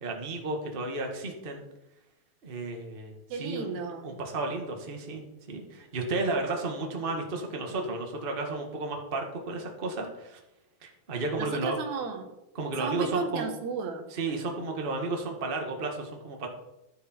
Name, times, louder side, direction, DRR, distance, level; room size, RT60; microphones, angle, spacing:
voice 1, 0.0-1.6 2.4-3.7 4.0-5.2 5.5-10.4 10.8-11.8 12.5-13.5 14.1-16.5, right 3 dB, 35° right, 2 dB, 0.9 m, -33 dB
voice 2, 3.3-4.1 11.4-12.3 12.8-14.1, right 5 dB, 60° right, 5 dB, 2.3 m, -34 dB
11.5 x 9.9 x 4.6 m, 0.91 s
omnidirectional pair, 4.2 m